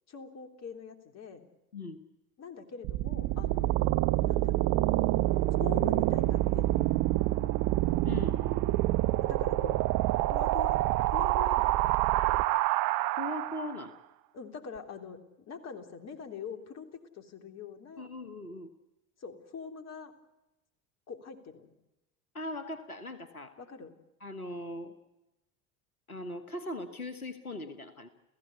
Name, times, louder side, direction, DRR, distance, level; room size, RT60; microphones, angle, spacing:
voice 1, 0.1-1.4 2.4-3.7 4.3-4.7 5.6-6.9 9.3-9.8 10.3-10.8 11.1-11.8 14.3-16.9 17.1-18.1 19.2-20.1 21.1-21.7 23.6-23.9, left 6 dB, 40° left, 6 dB, 3.4 m, -43 dB
sound 1, 2.8-13.8, right 16 dB, 45° right, 1.0 m, -27 dB
voice 2, 8.0-8.4 13.2-14.0 18.0-18.7 22.3-23.5 24.2-24.9 26.1-28.1, left 1 dB, 90° left, 11 dB, 1.4 m, -39 dB
29.5 x 16.0 x 8.3 m, 0.95 s
figure-of-eight pair, 70°, 42 cm